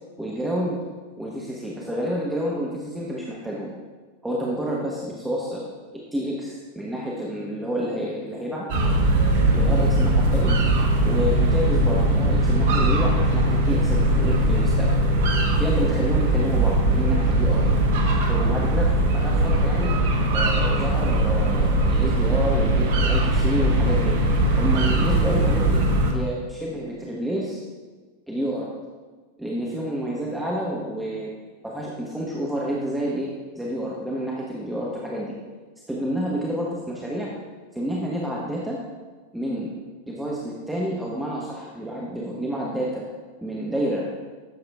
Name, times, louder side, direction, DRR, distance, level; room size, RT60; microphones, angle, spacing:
voice 1, 0.2-0.8 1.2-3.7 4.2-5.6 5.9-8.7 9.5-10.6 11.0-14.9 15.6-17.6 18.3-19.9 20.3-24.2 24.6-25.8 26.1-27.6 28.3-28.7 29.4-31.3 31.6-33.3 33.5-35.3 35.9-37.3 37.7-38.8 39.3-39.7 40.1-43.0 43.4-44.1, equal, 5° right, -4 dB, 1.0 m, -29 dB
sound 1, 8.7-26.1, right 1 dB, 55° right, 1.1 m, -20 dB
11.5 x 7.0 x 2.4 m, 1.4 s
figure-of-eight pair, 90°, 0 cm